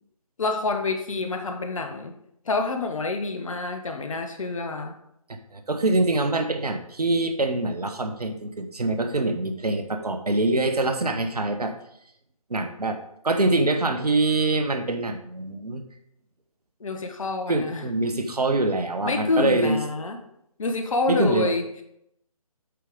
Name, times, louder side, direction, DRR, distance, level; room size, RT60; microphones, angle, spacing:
voice 1, 0.4-2.1 2.4-4.9 16.8-17.8 19.0-20.2 20.6-21.6, left 3 dB, 60° left, 5 dB, 1.2 m, -27 dB
voice 2, 5.5-11.7 12.5-13.0 13.2-15.8 17.5-19.8 21.1-21.5, right 2 dB, 85° right, 7 dB, 1.1 m, -24 dB
8.3 x 4.8 x 3.8 m, 0.75 s
figure-of-eight pair, 150°, 19 cm